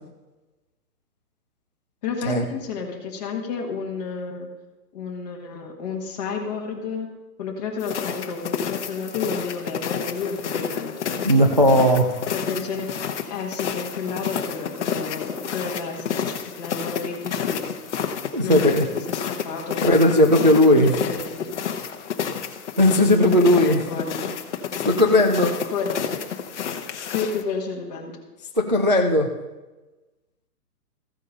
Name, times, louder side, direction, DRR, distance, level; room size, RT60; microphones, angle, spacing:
voice 1, 2.0-4.5 4.9-7.1 7.4-11.6 12.3-12.9 13.3-17.6 18.4-20.1 20.7-21.6 23.2-24.3 25.7-26.2 27.1-28.1, left 5 dB, 25° left, -1 dB, 1.7 m, -31 dB
sound 1, 7.8-27.4, left 7 dB, 45° left, 1.0 m, -30 dB
voice 2, 11.2-12.1 18.3-18.8 19.8-21.0 22.8-23.8 24.9-25.5 28.6-29.3, left 1 dB, 30° right, 1 dB, 0.4 m, -17 dB
14.5 x 8.2 x 5.3 m, 1.1 s
hypercardioid pair, 175°, 47 cm